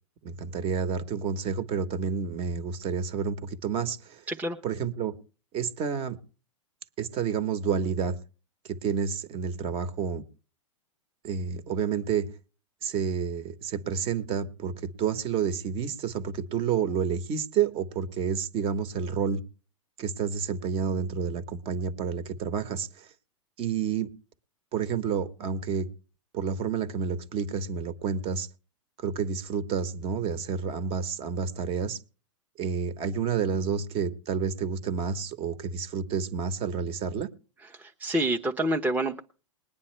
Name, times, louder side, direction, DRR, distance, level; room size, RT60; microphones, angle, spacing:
voice 1, 0.2-4.2 4.6-5.1 5.5-6.2 7.0-8.2 8.6-10.2 11.2-12.3 12.8-19.4 20.0-23.1 23.6-24.1 24.7-25.9 26.3-28.5 29.0-32.0 32.6-37.3, right 6 dB, 35° right, 1.4 m, -29 dB
voice 2, 37.8-39.2, right 1 dB, 10° right, 1.0 m, -27 dB
21.0 x 9.6 x 3.3 m
hypercardioid pair, 120°, 17 cm